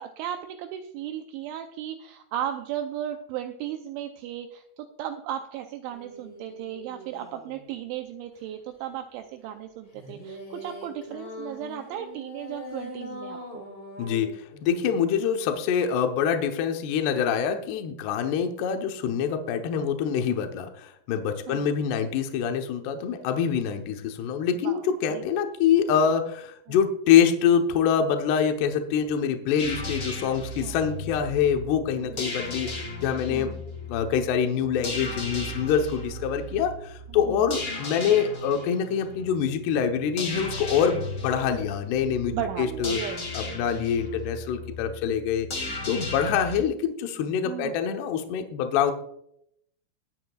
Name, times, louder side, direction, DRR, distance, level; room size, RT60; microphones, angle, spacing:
voice 1, 0.0-13.6 21.5-21.7 24.6-25.3 26.7-26.8 30.6-30.8 31.9-32.1 33.3-33.6 37.3-37.5 42.3-43.2 43.5-43.6 47.4-47.7, right 11 dB, 85° right, 5 dB, 2.7 m, -35 dB
sound 1, 5.9-7.7 9.9-15.0, left 1 dB, 35° left, 2.6 m, -42 dB
voice 2, 14.0-33.5 33.9-43.0 43.3-45.5 45.9-48.9, left 7 dB, 75° left, 5 dB, 2.6 m, -25 dB
sound 2, 29.6-46.6, left 2 dB, 50° left, 1.3 m, -36 dB
22.0 x 8.0 x 2.4 m, 0.73 s
omnidirectional pair, 5.9 m